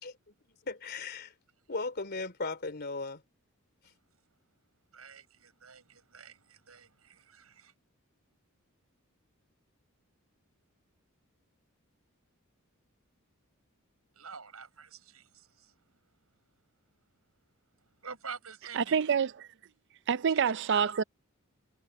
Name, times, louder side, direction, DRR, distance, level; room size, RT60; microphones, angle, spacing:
voice 1, 0.0-1.3 1.7-3.2, left 3 dB, 50° left, 3.1 m, -37 dB
voice 2, 4.9-7.7 14.2-15.7 18.0-19.0 20.7-20.8, right 6 dB, 90° right, 6.8 m, -47 dB
voice 3, 18.7-19.5 20.1-21.0, right 7 dB, 55° right, 0.5 m, -27 dB
head